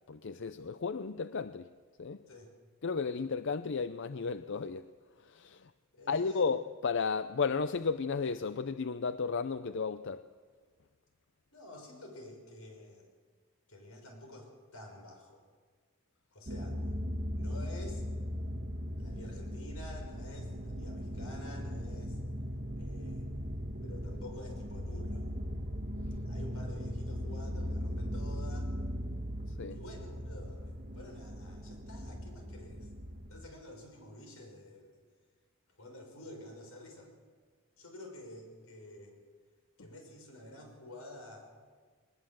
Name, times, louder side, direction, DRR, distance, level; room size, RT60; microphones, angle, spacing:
voice 1, 0.1-1.7 2.0-2.2 2.8-4.8 5.3-5.6 6.1-10.2 29.6-29.8, left 5 dB, 60° left, 12 dB, 0.6 m, -33 dB
voice 2, 5.9-6.5 11.5-13.1 13.7-15.4 16.3-16.8 17.4-18.0 19.0-22.2 22.8-23.2 23.8-25.3 26.3-28.7 29.7-32.9 33.3-35.0 35.8-37.1 37.8-39.1 39.8-41.5, left 1 dB, 85° left, 3 dB, 6.1 m, -50 dB
sound 1, 16.5-33.5, equal, 40° right, 1.6 m, -38 dB
21.0 x 20.0 x 7.7 m, 1.5 s
head